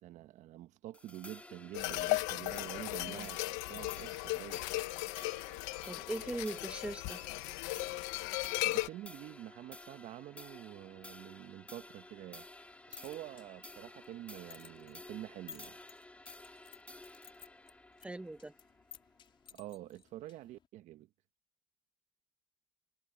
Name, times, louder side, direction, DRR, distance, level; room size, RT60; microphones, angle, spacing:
voice 1, 0.0-4.6 8.6-12.5 12.9-15.8 19.5-21.1, right 14 dB, 60° right, 1.2 m, -47 dB
sound 1, 0.9-19.5, left 2 dB, 10° left, 1.9 m, -54 dB
sound 2, 1.7-8.9, left 20 dB, 80° left, 1.3 m, -36 dB
voice 2, 5.9-7.2 18.0-18.5, right 2 dB, 10° right, 1.7 m, -40 dB
sound 3, 12.6-20.7, left 7 dB, 35° left, 3.7 m, -58 dB
supercardioid pair, 110°, 14 cm